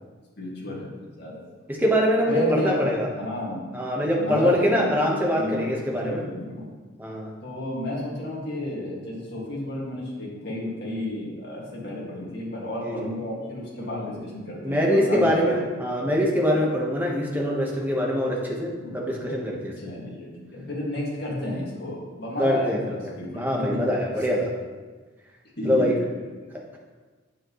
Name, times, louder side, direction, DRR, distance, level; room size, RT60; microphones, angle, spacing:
voice 1, 0.4-1.4 2.3-2.9 3.1-3.6 4.2-6.7 7.4-15.7 18.8-18.9 19.8-23.3 23.7-24.0 25.6-25.9, left 1 dB, 50° left, -5 dB, 2.1 m, -32 dB
voice 2, 1.7-3.1 3.7-6.2 7.0-7.3 12.8-13.1 13.8-14.1 14.6-19.7 22.4-23.0 23.3-24.5 25.6-25.9, equal, 10° right, -2 dB, 1.2 m, -24 dB
9.1 x 7.4 x 3.2 m, 1.3 s
head